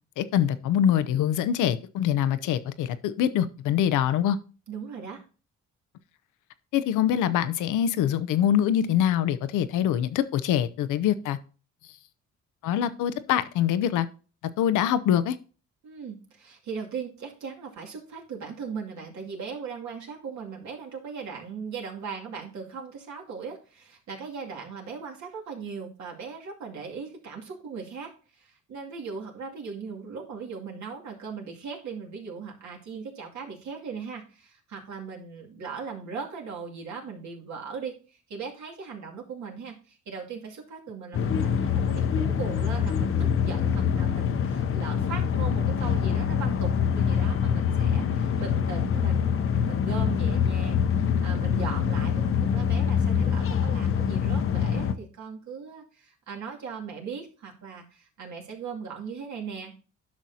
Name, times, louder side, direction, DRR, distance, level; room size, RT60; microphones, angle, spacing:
voice 1, 0.2-4.4 6.7-11.4 12.6-14.1 14.6-15.4, left 10 dB, 85° left, 0.7 m, -24 dB
voice 2, 4.7-5.2 15.8-59.8, right 5 dB, 70° right, 2.4 m, -39 dB
sound 1, 41.1-54.9, left 7 dB, 45° left, 0.8 m, -25 dB
10.5 x 6.1 x 2.8 m
cardioid pair, 90°, 30 cm